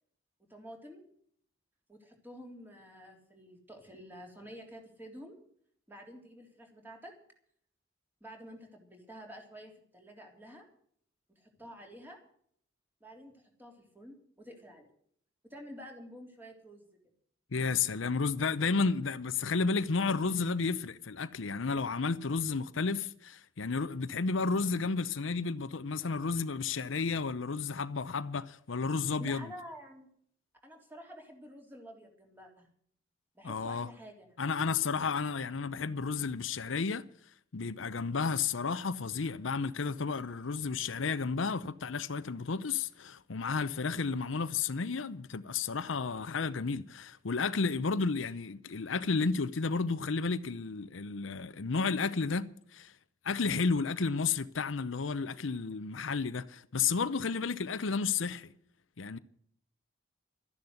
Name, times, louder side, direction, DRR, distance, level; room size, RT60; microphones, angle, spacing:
voice 1, 0.5-1.0 1.9-5.4 5.9-7.1 8.2-10.6 11.4-12.2 13.0-14.9 15.5-16.8 29.2-30.1 30.6-32.7 33.3-34.4, equal, 10° right, 3.4 m, -49 dB
voice 2, 17.5-29.5 33.4-33.9 34.4-37.0 37.5-52.9 53.2-58.5 59.0-59.2, left 4 dB, 80° left, 0.7 m, -32 dB
13.0 x 10.5 x 7.9 m
head